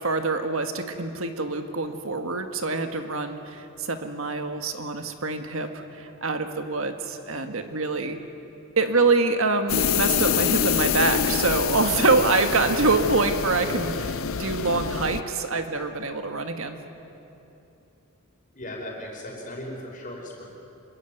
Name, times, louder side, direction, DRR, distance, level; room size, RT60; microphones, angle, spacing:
voice 1, 0.0-8.2 8.8-16.8, right 3 dB, 65° right, 7 dB, 1.7 m, -25 dB
sound 1, 9.7-15.2, left 7 dB, 65° left, 0.7 m, -26 dB
voice 2, 18.5-20.4, left 1 dB, 35° left, -1 dB, 5.2 m, -37 dB
26.0 x 22.0 x 9.4 m, 2.9 s
head